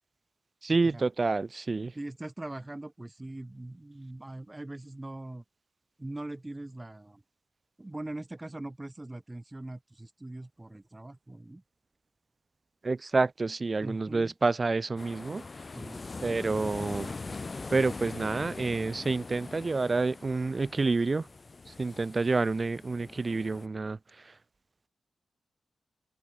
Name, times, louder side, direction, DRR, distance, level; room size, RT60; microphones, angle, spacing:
voice 1, 0.6-1.9 12.8-15.4 16.2-17.1 17.7-21.3 21.7-24.0, right 3 dB, 35° right, 0.3 m, -28 dB
voice 2, 1.9-5.4 6.0-7.2 7.8-11.6 13.8-14.3 15.7-16.0, right 2 dB, 15° right, 3.5 m, -41 dB
sound 1, 15.0-23.7, left 3 dB, 35° left, 1.8 m, -42 dB
wide cardioid pair, 105°, 0 cm